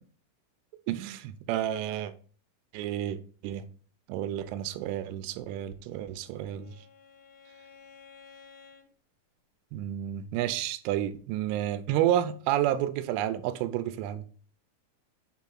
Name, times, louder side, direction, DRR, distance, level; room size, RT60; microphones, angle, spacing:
voice 1, 0.9-2.1 2.7-3.2 3.4-3.7 4.1-6.7 9.7-14.2, right 12 dB, 80° right, 3.0 m, -30 dB
Bowed string instrument, 5.7-8.9, left 6 dB, 70° left, 2.9 m, -54 dB
7.0 x 3.6 x 5.7 m
omnidirectional pair, 5.8 m